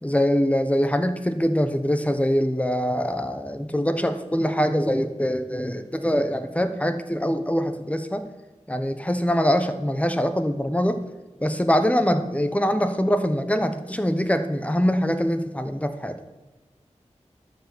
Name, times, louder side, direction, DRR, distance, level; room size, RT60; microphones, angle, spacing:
voice 1, 0.0-8.2 8.7-11.0 11.4-16.2, equal, 10° left, 9 dB, 1.0 m, -23 dB
12.0 x 5.0 x 7.9 m, 1.1 s
wide cardioid pair, 60°, 12 cm